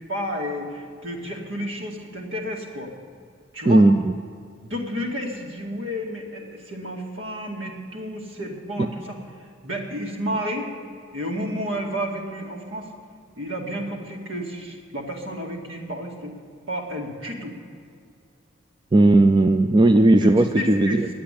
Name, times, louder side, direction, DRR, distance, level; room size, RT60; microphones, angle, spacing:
voice 1, 0.1-2.9 3.5-3.8 4.6-9.2 9.6-10.7 11.1-12.9 13.4-16.3 16.7-17.5 20.2-21.0, equal, 75° right, 0 dB, 2.2 m, -31 dB
voice 2, 3.7-4.1 8.8-8.9 18.9-21.1, right 2 dB, 25° right, 7 dB, 0.4 m, -16 dB
10.5 x 8.6 x 9.9 m, 2.3 s
head